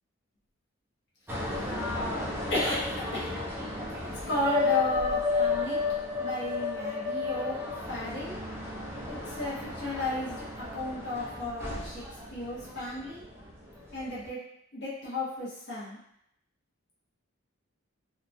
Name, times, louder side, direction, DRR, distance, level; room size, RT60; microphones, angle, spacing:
sound 1, 1.3-13.5 13.9-14.3, left 3 dB, 10° right, 0.4 m, -33 dB
voice 1, 2.5-3.3 4.0-5.8 6.2-7.6 7.9-8.4 9.1-12.0 12.3-13.2 13.9-14.4 14.7-16.0, left 1 dB, 55° left, -8 dB, 0.9 m, -33 dB
2.8 x 2.3 x 2.6 m, 0.76 s
head